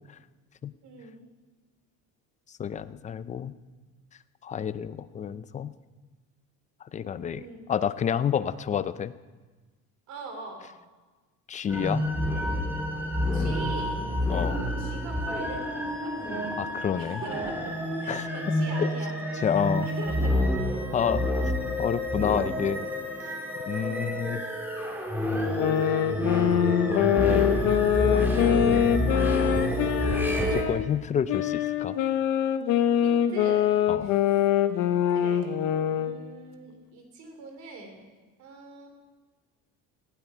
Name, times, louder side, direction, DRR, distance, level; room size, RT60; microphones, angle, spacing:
voice 1, 0.8-1.2 7.3-7.7 10.1-10.7 13.3-14.0 14.8-16.2 16.9-19.2 19.8-20.8 23.7-24.2 25.9-26.3 33.0-33.7 34.0-34.4 35.1-35.5 35.9-38.1 38.4-38.9, right 3 dB, 55° right, 4 dB, 3.6 m, -43 dB
voice 2, 2.6-3.5 4.4-5.7 6.9-7.4 7.7-9.1 11.5-12.1 14.3-14.6 16.6-17.2 18.1-18.3 18.8-18.9 19.4-19.9 20.9-21.2 21.8-22.9 23.7-24.4 26.9-27.5 28.4-29.2 30.4-32.0 33.9-34.1, left 8 dB, 25° left, 14 dB, 0.4 m, -29 dB
sound 1, 11.7-30.6, left 1 dB, 5° right, 2.1 m, -28 dB
sound 2, 25.4-30.8 31.3-36.2, left 10 dB, 75° left, 1.1 m, -24 dB
18.5 x 15.5 x 4.5 m, 1.3 s
cardioid pair, 160°, 33 cm